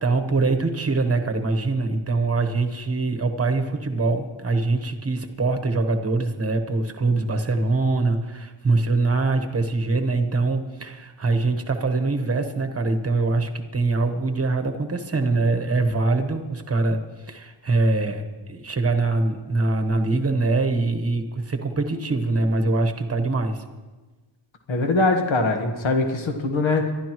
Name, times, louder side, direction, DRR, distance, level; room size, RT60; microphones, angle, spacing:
voice 1, 0.0-17.0 17.3-23.6, right 3 dB, 30° right, 6 dB, 1.1 m, -23 dB
voice 2, 24.7-26.9, left 3 dB, 75° left, 4 dB, 1.5 m, -22 dB
26.0 x 11.5 x 3.1 m, 1.3 s
wide cardioid pair, 155°, 46 cm